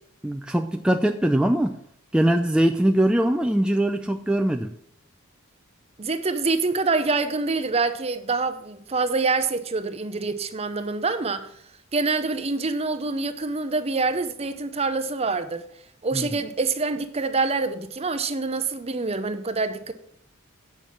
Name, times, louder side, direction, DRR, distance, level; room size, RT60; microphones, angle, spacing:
voice 1, 0.2-1.8 2.1-4.7 16.1-16.3, right 1 dB, 5° right, 0.3 m, -22 dB
voice 2, 6.0-11.5 11.9-15.6 16.0-19.9, right 3 dB, 30° right, 0.7 m, -26 dB
9.0 x 5.9 x 6.0 m
head